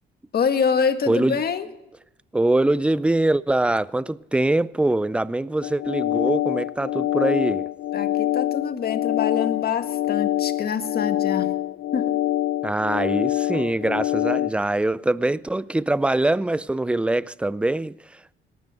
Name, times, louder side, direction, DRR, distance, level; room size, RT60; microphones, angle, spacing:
voice 1, 0.3-1.7 7.9-11.5 11.9-12.1, left 6 dB, 50° left, 1.7 m, -25 dB
voice 2, 1.1-1.4 2.3-7.7 12.6-18.3, right 2 dB, 5° right, 0.5 m, -23 dB
sound 1, 5.6-14.5, left 13 dB, 70° left, 0.7 m, -25 dB
18.5 x 12.5 x 5.6 m
cardioid pair, 90°, 20 cm